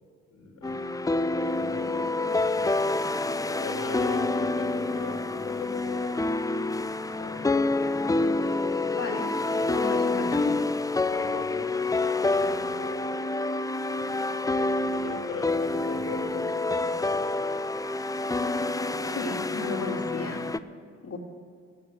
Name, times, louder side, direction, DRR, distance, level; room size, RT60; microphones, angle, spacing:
voice 1, 0.3-1.0 1.3-3.1 3.6-6.2 7.1-7.5 11.1-11.9 12.3-13.0 14.4-17.4, left 5 dB, 65° left, 2 dB, 2.6 m, -40 dB
sound 1, 0.6-20.6, left 2 dB, 10° left, 0.6 m, -27 dB
voice 2, 8.9-9.3 9.7-10.6 19.1-20.5 21.0-21.2, left 3 dB, 50° left, 2 dB, 2.7 m, -34 dB
16.5 x 7.2 x 8.1 m, 2.3 s
hypercardioid pair, 55°, 32 cm